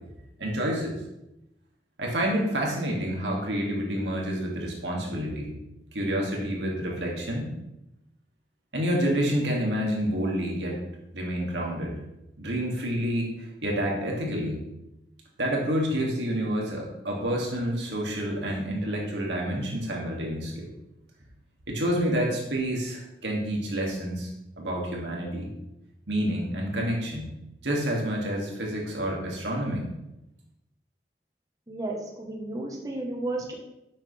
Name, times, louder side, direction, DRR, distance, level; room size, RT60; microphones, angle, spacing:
voice 1, 0.4-1.0 2.0-5.6 5.9-7.5 8.7-10.8 11.1-11.9 12.4-14.7 15.4-20.7 21.7-24.3 24.6-25.5 26.1-27.3 27.6-29.9, equal, 85° right, -1 dB, 2.4 m, -28 dB
voice 2, 31.7-33.5, right 2 dB, 20° right, -1 dB, 1.2 m, -33 dB
11.0 x 7.3 x 3.4 m, 0.89 s
head